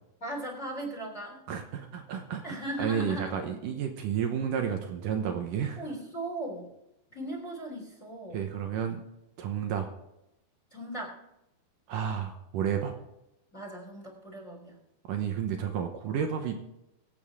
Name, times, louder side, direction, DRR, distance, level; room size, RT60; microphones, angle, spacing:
voice 1, 0.2-1.4 2.4-3.4 5.8-6.7 7.1-8.4 10.7-11.1 13.5-14.8, right 1 dB, 20° left, 1 dB, 3.2 m, -38 dB
voice 2, 1.5-5.8 8.3-9.0 9.4-9.9 11.9-12.9 15.1-16.6, right 8 dB, 75° right, 5 dB, 2.1 m, -31 dB
24.5 x 8.5 x 3.7 m, 0.87 s
omnidirectional pair, 5.0 m